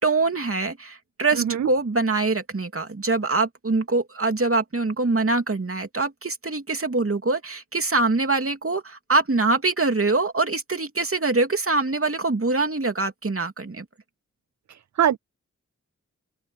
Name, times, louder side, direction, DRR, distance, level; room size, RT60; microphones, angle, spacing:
voice 1, 0.0-13.8, right 3 dB, 45° right, 2.8 m, -24 dB
voice 2, 1.4-1.7 14.7-15.2, right 10 dB, 70° right, 0.5 m, -23 dB
open air
cardioid pair, 50°, 30 cm